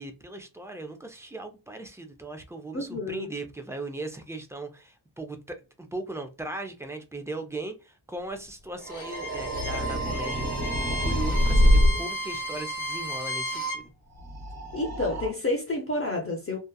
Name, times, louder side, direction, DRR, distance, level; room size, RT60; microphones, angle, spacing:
voice 1, 0.0-13.9, right 2 dB, 5° right, 0.4 m, -38 dB
voice 2, 2.7-3.3 11.5-11.9 14.7-16.6, left 2 dB, 30° left, 0.7 m, -30 dB
sound 1, 8.7-12.1 14.1-15.3, equal, 35° right, 1.3 m, -25 dB
Bowed string instrument, 8.8-13.8, right 1 dB, 85° left, 1.0 m, -33 dB
2.7 x 2.3 x 2.2 m
wide cardioid pair, 110°, 46 cm